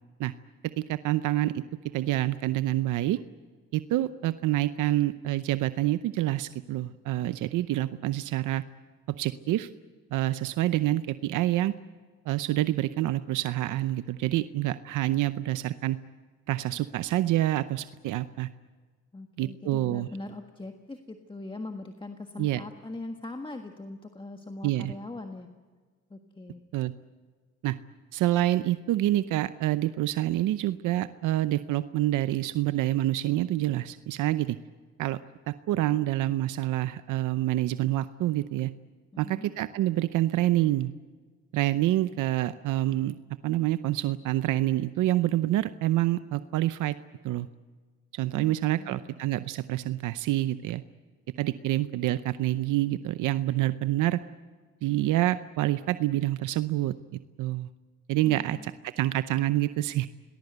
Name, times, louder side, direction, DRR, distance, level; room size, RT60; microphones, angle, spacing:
voice 1, 0.8-1.6 1.9-3.2 3.7-8.6 9.2-9.7 10.1-11.7 12.3-16.0 16.5-18.5 19.4-20.1 22.4-22.6 24.6-24.9 26.7-26.9 27.6-27.8 28.1-34.6 35.0-35.2 35.5-38.7 39.2-40.9 41.5-43.2 43.4-46.9 47.2-47.5 48.1-50.8 51.4-54.2 54.8-56.9 57.4-57.7 58.1-60.1, right 15 dB, 85° right, 12 dB, 0.7 m, -27 dB
voice 2, 19.1-25.5 26.1-26.6 39.1-39.5 48.3-49.2 58.2-58.7, left 2 dB, 15° left, 4 dB, 1.5 m, -41 dB
26.5 x 19.5 x 8.1 m, 1.5 s
cardioid pair, 90°, 30 cm